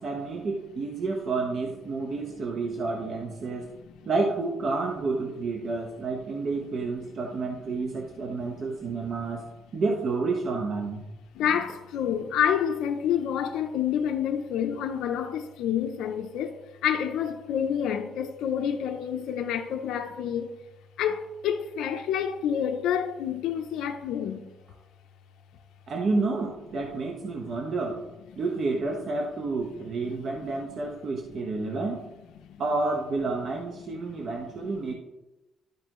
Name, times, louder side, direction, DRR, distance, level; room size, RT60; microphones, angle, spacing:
voice 1, 0.0-3.7 4.0-11.0 25.9-28.0 28.3-32.0 32.6-34.9, right 3 dB, 55° right, 1.2 m, -30 dB
voice 2, 11.3-20.5 21.0-24.5, left 8 dB, 85° left, 0.6 m, -28 dB
12.0 x 5.3 x 3.1 m
cardioid pair, 90°, 0 cm